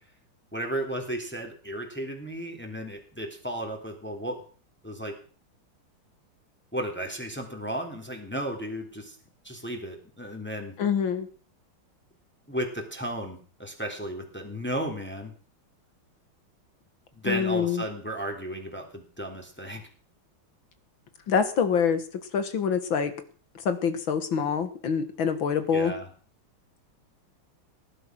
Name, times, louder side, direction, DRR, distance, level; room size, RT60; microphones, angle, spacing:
voice 1, 0.5-4.4 4.8-5.1 6.7-9.2 9.4-10.7 12.5-15.3 17.1-19.8 25.7-26.1, right 1 dB, 5° left, 3 dB, 3.2 m, -34 dB
voice 2, 10.8-11.3 17.2-17.8 21.3-23.1 23.7-25.9, left 6 dB, 70° left, 11 dB, 2.3 m, -26 dB
18.5 x 11.5 x 6.2 m, 0.41 s
omnidirectional pair, 2.3 m